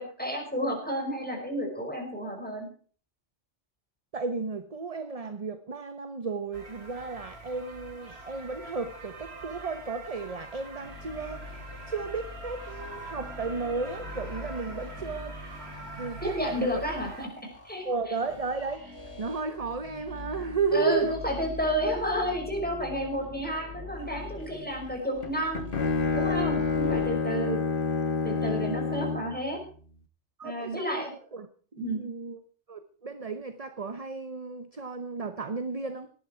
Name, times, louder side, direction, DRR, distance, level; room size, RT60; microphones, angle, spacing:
voice 1, 0.0-2.7 16.2-17.3 17.6-17.9 20.7-25.7 26.1-27.6 28.2-29.6 30.4-31.1 31.8-32.0, equal, 5° left, 1 dB, 5.3 m, -31 dB
voice 2, 4.1-15.4 16.0-16.7 17.8-21.2 30.4-31.5 31.7-32.4 32.7-36.1, right 4 dB, 35° right, 10 dB, 1.0 m, -33 dB
sound 1, 6.5-17.3, right 2 dB, 60° right, 2.9 m, -44 dB
sound 2, 10.8-27.1, left 3 dB, 75° left, 4.8 m, -44 dB
Bowed string instrument, 25.2-29.4, left 4 dB, 50° left, 1.5 m, -28 dB
18.0 x 12.5 x 4.5 m, 0.43 s
omnidirectional pair, 1.2 m